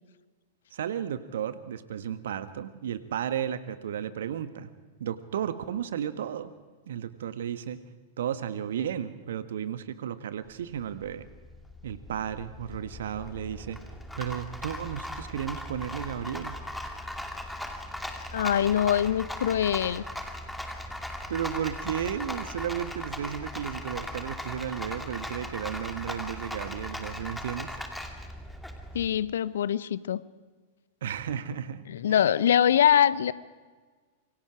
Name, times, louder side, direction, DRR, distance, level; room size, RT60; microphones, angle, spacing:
voice 1, 0.7-4.7 5.0-6.5 6.9-7.8 8.2-11.3 11.8-13.8 14.2-16.6 21.3-27.8 31.0-31.8 32.1-32.3, right 9 dB, 60° right, 12 dB, 1.4 m, -33 dB
Rattle, 10.5-29.1, left 1 dB, 5° left, 2.7 m, -38 dB
voice 2, 18.3-20.0 28.9-30.2 31.9-33.3, left 9 dB, 65° left, 18 dB, 0.8 m, -23 dB
27.0 x 24.0 x 5.0 m, 1.4 s
figure-of-eight pair, 95°, 0 cm